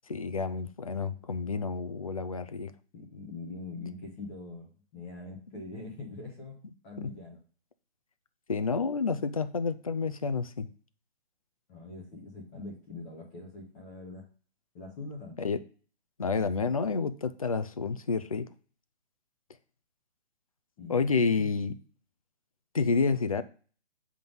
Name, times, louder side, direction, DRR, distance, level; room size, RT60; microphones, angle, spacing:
voice 1, 0.1-2.7 7.0-7.1 8.5-10.7 15.4-15.6 16.2-18.5 20.9-21.7 22.7-23.4, left 4 dB, 35° left, 0.4 m, -29 dB
voice 2, 2.9-6.6 6.8-7.4 11.7-14.2 14.7-15.4 20.8-21.6 23.1-23.2, left 3 dB, 10° left, 0.8 m, -43 dB
7.5 x 3.6 x 5.4 m
hypercardioid pair, 170°, 33 cm